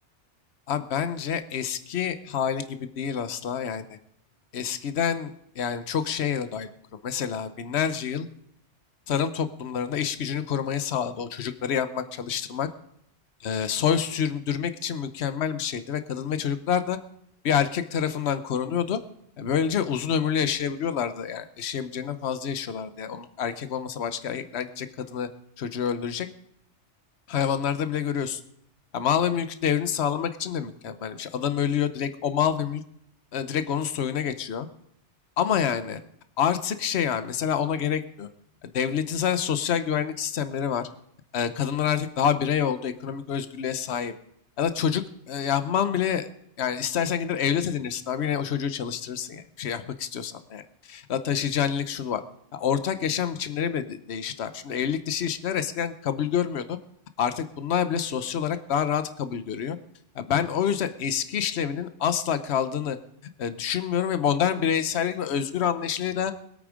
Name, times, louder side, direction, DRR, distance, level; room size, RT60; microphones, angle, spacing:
voice 1, 0.7-3.9 4.5-8.3 9.1-12.7 13.4-17.0 17.4-19.0 19.4-25.3 25.6-26.3 27.3-28.4 28.9-32.8 33.3-34.7 35.4-36.0 36.4-38.3 38.6-40.9 41.3-44.1 44.6-46.3 46.6-52.2 52.5-56.8 57.2-59.8 60.1-63.0 63.4-66.3, left 8 dB, 70° left, 11 dB, 1.1 m, -27 dB
21.0 x 8.7 x 5.1 m, 0.71 s
omnidirectional pair, 1.2 m